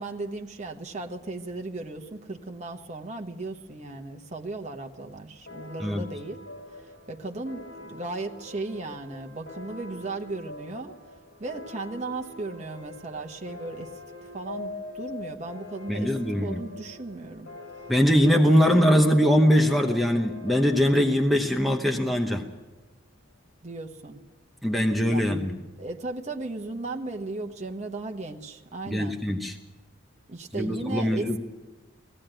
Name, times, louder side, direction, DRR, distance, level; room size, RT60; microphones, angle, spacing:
voice 1, 0.0-6.4 6.7-11.0 11.4-13.9 14.2-16.1 16.4-17.5 23.6-24.2 25.1-25.4 25.8-29.2 30.3-31.4, right 2 dB, 35° right, 3 dB, 1.1 m, -36 dB
sound 1, 5.5-22.6, left 3 dB, 65° left, 4.0 m, -42 dB
voice 2, 15.9-16.6 17.9-22.4 24.6-25.6 28.8-29.5 30.5-31.4, equal, ahead, 2 dB, 0.9 m, -22 dB
18.5 x 15.5 x 9.0 m, 1.2 s
head